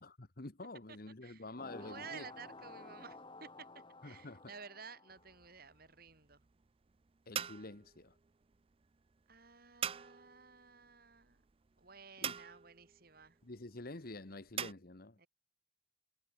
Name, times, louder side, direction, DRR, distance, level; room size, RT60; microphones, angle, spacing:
voice 1, 0.0-2.3 4.0-4.4 7.3-8.2 12.2-12.3 13.4-15.2, left 2 dB, 50° left, 1.4 m, -48 dB
sound 1, 1.6-5.5, left 2 dB, 25° left, 5.2 m, -53 dB
voice 2, 1.8-6.4 9.3-11.4 11.8-13.4 15.2-15.3, right 5 dB, 50° right, 7.1 m, -53 dB
sound 2, 5.1-14.7, right 8 dB, 30° right, 0.5 m, -46 dB
head